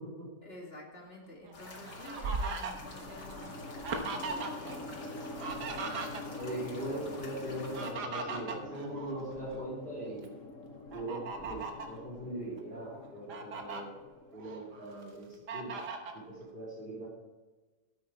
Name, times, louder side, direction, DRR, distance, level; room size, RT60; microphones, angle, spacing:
voice 1, 0.4-5.0, left 1 dB, 35° left, -1 dB, 2.6 m, -51 dB
Fowl, 1.4-4.8 5.0-6.6 7.5-9.6 10.1-10.3 10.9-12.0 12.6-12.7 13.0-13.8 14.3-15.0 15.5-16.2, right 4 dB, 70° right, 1.8 m, -39 dB
sound 1, 1.5-7.9, left 2 dB, 75° left, 2.7 m, -48 dB
sound 2, 2.7-15.0, left 2 dB, 55° left, 1.4 m, -46 dB
voice 2, 6.3-10.4 10.9-13.9 14.3-15.8 16.1-17.1, right 1 dB, 30° right, -4 dB, 3.3 m, -40 dB
13.0 x 8.8 x 4.4 m, 1.2 s
omnidirectional pair, 1.8 m